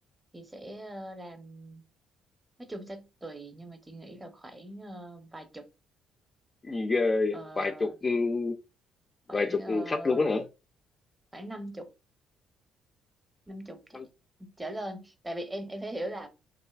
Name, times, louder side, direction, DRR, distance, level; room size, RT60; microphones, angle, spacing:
voice 1, 0.3-1.8 2.6-5.7 7.3-8.0 9.3-10.4 11.3-11.9 13.5-14.0 14.4-16.3, right 1 dB, 15° right, 0.6 m, -41 dB
voice 2, 6.6-8.6 9.3-10.5 13.9-14.0, left 3 dB, 30° left, 0.3 m, -28 dB
2.6 x 2.4 x 2.3 m
supercardioid pair, 80°, 0 cm